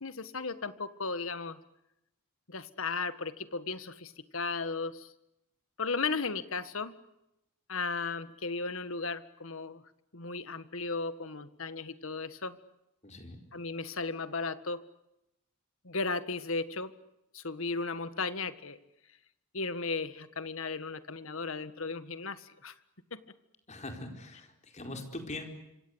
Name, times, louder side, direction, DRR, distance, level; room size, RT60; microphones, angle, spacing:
voice 1, 0.0-1.6 2.5-5.1 5.8-6.9 7.7-9.8 10.1-12.6 13.5-14.8 15.8-16.9 17.3-18.8 19.5-22.7 23.1-23.2, left 4 dB, 65° left, 12 dB, 1.7 m, -35 dB
voice 2, 13.0-13.4 23.7-25.4, left 2 dB, 30° left, 4 dB, 4.6 m, -42 dB
26.5 x 26.0 x 8.1 m, 0.87 s
head